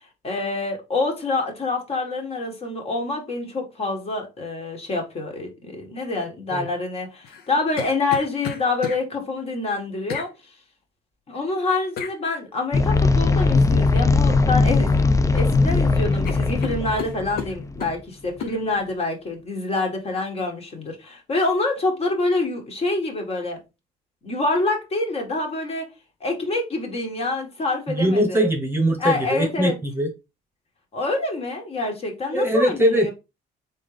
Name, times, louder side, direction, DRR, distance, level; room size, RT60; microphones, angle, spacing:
voice 1, 0.2-10.3 11.3-14.9 15.2-23.6 24.2-25.8 26.2-28.4 29.0-29.8 30.9-33.1, left 3 dB, 35° left, 1.8 m, -26 dB
sound 1, 7.2-9.0 10.1-10.3 12.0-12.2 14.2-14.5 14.8-15.5 15.8-15.9 16.2-18.0 18.4-18.6, left 7 dB, 65° left, 0.9 m, -34 dB
sound 2, 12.7-17.9, left 3 dB, 20° left, 0.5 m, -19 dB
voice 2, 27.9-30.1 32.3-33.1, equal, 15° right, 1.0 m, -21 dB
3.9 x 3.9 x 3.4 m
cardioid pair, 110°, 17 cm